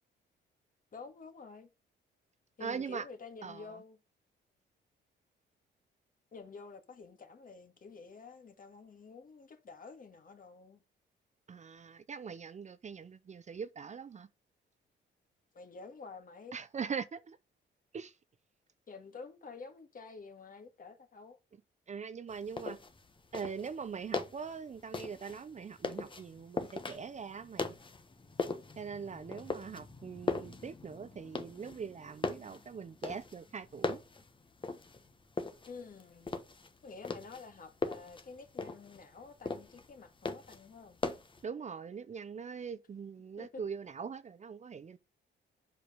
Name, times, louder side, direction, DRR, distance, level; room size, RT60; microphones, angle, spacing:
voice 1, 0.9-1.7 2.6-4.0 6.3-10.8 15.5-16.6 18.9-21.4 35.6-36.4 36.8-41.0 43.4-43.6, left 4 dB, 45° left, 2.0 m, -49 dB
voice 2, 2.6-3.0 3.4-3.8 11.5-14.3 16.5-17.4 17.9-18.1 21.9-22.8 23.3-27.7 28.8-34.0 41.4-45.0, right 6 dB, 35° right, 0.7 m, -42 dB
sound 1, 22.3-41.4, left 3 dB, 25° left, 1.2 m, -40 dB
7.9 x 5.0 x 5.1 m
cardioid pair, 90°, 20 cm